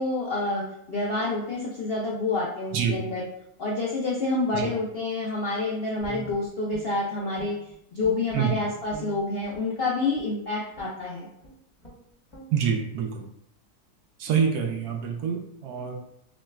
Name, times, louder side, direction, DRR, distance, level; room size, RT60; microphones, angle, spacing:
voice 1, 0.0-3.2 3.6-7.6 7.9-11.3, left 2 dB, 70° left, -3 dB, 0.5 m, -28 dB
Guitar, 6.0-7.7 8.0-9.7 10.1-10.4 10.7-11.0 11.4-11.5 11.8-12.0 12.3-12.5, right 2 dB, 20° left, 0.9 m, -44 dB
voice 2, 12.5-13.3 14.2-16.0, right 7 dB, 75° right, 3 dB, 1.1 m, -26 dB
6.0 x 2.3 x 2.4 m, 0.77 s
omnidirectional pair, 1.7 m